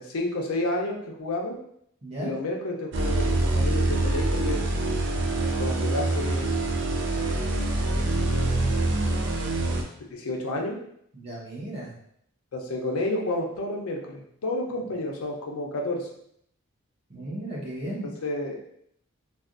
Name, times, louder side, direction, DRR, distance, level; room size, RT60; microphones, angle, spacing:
voice 1, 0.0-1.6 2.2-4.6 5.6-6.5 7.0-7.4 7.8-8.6 10.1-10.8 12.5-16.1 18.0-18.6, left 1 dB, 90° left, 0 dB, 0.6 m, -31 dB
sound 1, 2.9-9.8, right 2 dB, 55° right, 0.4 m, -25 dB
voice 2, 11.1-11.9 17.1-18.1, right 1 dB, 30° right, -5 dB, 0.9 m, -35 dB
3.3 x 2.3 x 2.5 m, 0.70 s
head